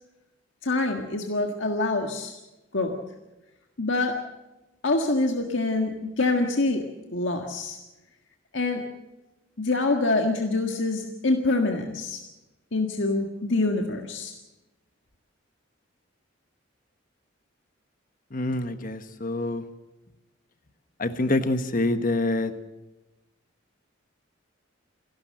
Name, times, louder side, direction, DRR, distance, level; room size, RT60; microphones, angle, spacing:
voice 1, 0.6-2.4 2.7-3.0 3.8-4.2 4.8-6.8 7.1-7.8 8.5-8.8 9.6-12.2 12.7-14.3, left 2 dB, 70° left, 3 dB, 1.7 m, -25 dB
voice 2, 18.3-19.6 21.0-22.5, left 2 dB, 45° left, 10 dB, 1.3 m, -26 dB
28.5 x 12.5 x 7.7 m, 1.0 s
head